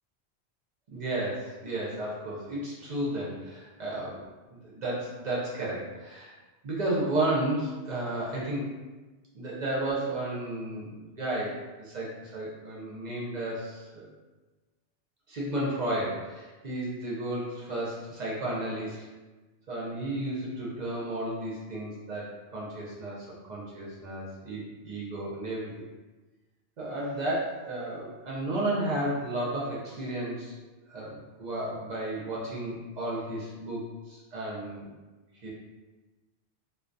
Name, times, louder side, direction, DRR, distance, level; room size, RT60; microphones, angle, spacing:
voice 1, 0.9-4.2 4.6-6.3 6.6-8.7 9.3-14.1 15.3-19.0 19.7-25.7 26.8-30.5 30.9-34.9 35.4-35.5, right 1 dB, 55° right, -6 dB, 0.5 m, -33 dB
2.2 x 2.2 x 2.5 m, 1.2 s
omnidirectional pair, 1.2 m